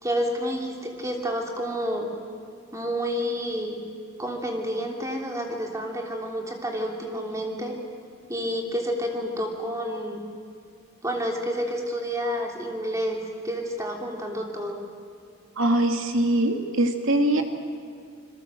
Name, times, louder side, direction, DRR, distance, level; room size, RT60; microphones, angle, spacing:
voice 1, 0.0-2.1 2.7-3.8 4.2-7.7 8.3-10.2 11.0-14.8, equal, 15° right, 1 dB, 3.1 m, -29 dB
voice 2, 15.6-17.4, right 1 dB, 75° right, 4 dB, 2.5 m, -22 dB
27.0 x 21.5 x 7.7 m, 2.3 s
head